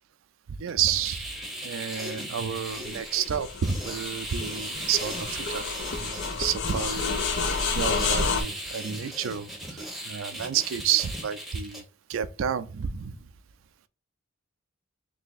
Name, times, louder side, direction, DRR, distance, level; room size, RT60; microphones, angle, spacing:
voice 1, 0.5-1.3 1.6-5.7 6.0-7.2 7.7-11.8 12.1-13.3, right 8 dB, 70° right, 0.4 m, -30 dB
sound 1, 0.7-11.8, right 1 dB, ahead, 0.8 m, -37 dB
sound 2, 2.7-8.4, left 5 dB, 60° left, 0.5 m, -30 dB
3.4 x 2.7 x 3.9 m
head